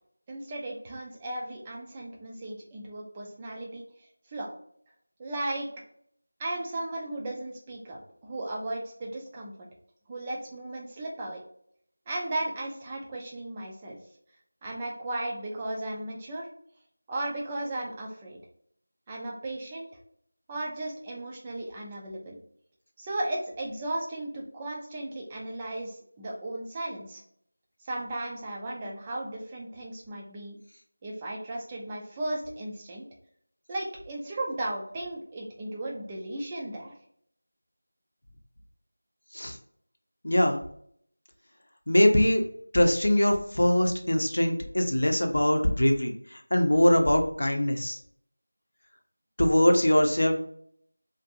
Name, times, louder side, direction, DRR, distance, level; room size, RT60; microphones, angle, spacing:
voice 1, 0.3-3.8 4.3-4.5 5.2-5.7 6.4-9.5 10.1-11.4 12.1-14.0 14.6-16.5 17.1-18.4 19.1-19.9 20.5-22.4 23.0-27.2 27.8-30.6 31.0-33.1 33.7-36.9, right 1 dB, 15° right, -2 dB, 0.4 m, -35 dB
voice 2, 40.2-40.6 41.9-42.4 42.7-48.0 49.4-50.4, left 1 dB, 70° left, 4 dB, 0.6 m, -22 dB
2.6 x 2.5 x 2.5 m, 0.64 s
figure-of-eight pair, 175°, 0 cm